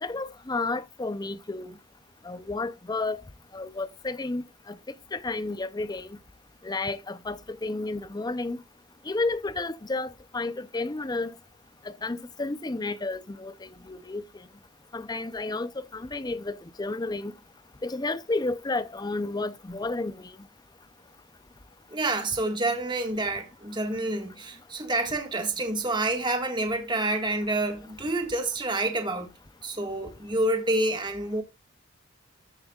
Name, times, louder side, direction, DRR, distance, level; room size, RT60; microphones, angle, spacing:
voice 1, 0.0-1.8 2.2-3.2 3.5-4.8 5.1-6.2 6.6-8.6 9.1-11.3 12.0-14.2 14.9-17.3 17.8-20.3, left 3 dB, 20° left, 0.5 m, -31 dB
voice 2, 21.9-29.3 29.6-31.4, right 2 dB, 20° right, 1.6 m, -28 dB
13.5 x 7.1 x 2.4 m
head